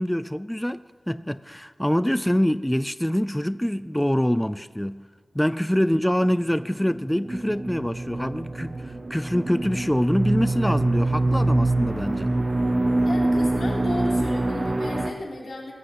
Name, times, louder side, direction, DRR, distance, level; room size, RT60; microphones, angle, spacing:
voice 1, 0.0-5.0 5.3-12.4, equal, 5° left, 0.4 m, -25 dB
sound 1, 6.6-15.1, right 2 dB, 35° right, 1.2 m, -25 dB
voice 2, 13.0-15.7, left 2 dB, 75° left, 3.5 m, -34 dB
19.5 x 8.2 x 8.1 m
wide cardioid pair, 90°, 0 cm